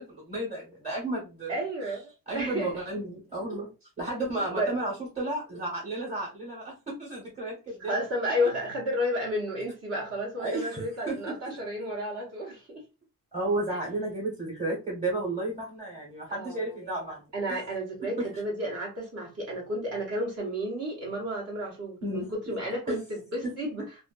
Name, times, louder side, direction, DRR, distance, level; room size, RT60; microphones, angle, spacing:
voice 1, 0.0-1.5 2.3-3.7 4.0-7.9 10.4-11.6 13.3-17.2 17.5-17.6 18.0-18.3 22.0-22.6 22.9-23.0 23.4-23.5, right 2 dB, 15° right, 1.1 m, -33 dB
voice 2, 1.5-2.7 4.5-4.7 7.8-12.8 16.3-17.0 17.3-23.8, equal, 45° right, 0.9 m, -32 dB
2.5 x 2.4 x 2.3 m
wide cardioid pair, 155°, 36 cm